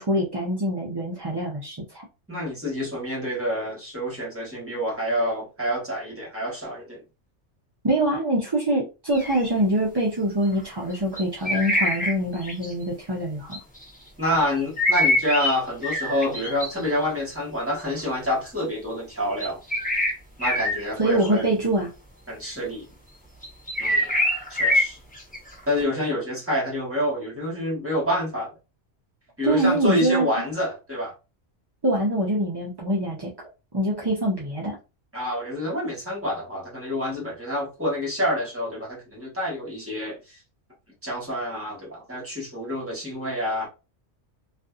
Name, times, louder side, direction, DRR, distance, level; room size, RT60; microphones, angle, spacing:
voice 1, 0.0-2.0 7.8-13.6 21.0-21.9 29.4-30.3 31.8-33.5 33.7-34.8, right 1 dB, 30° right, 0.4 m, -24 dB
voice 2, 2.3-7.0 14.2-19.6 20.4-21.5 22.3-22.8 23.8-24.1 24.5-25.0 25.7-28.5 29.4-31.1 35.1-40.4 41.0-43.7, left 1 dB, 10° right, 1.2 m, -27 dB
sound 1, 9.1-9.5 10.6-10.7 11.2-12.7 13.5-13.8 14.8-15.5 15.8-17.0 17.7-18.0 19.4-20.1 20.4-20.8 21.2-21.4 23.4-25.8, left 1 dB, 10° left, 0.7 m, -24 dB
2.6 x 2.4 x 2.4 m
omnidirectional pair, 1.2 m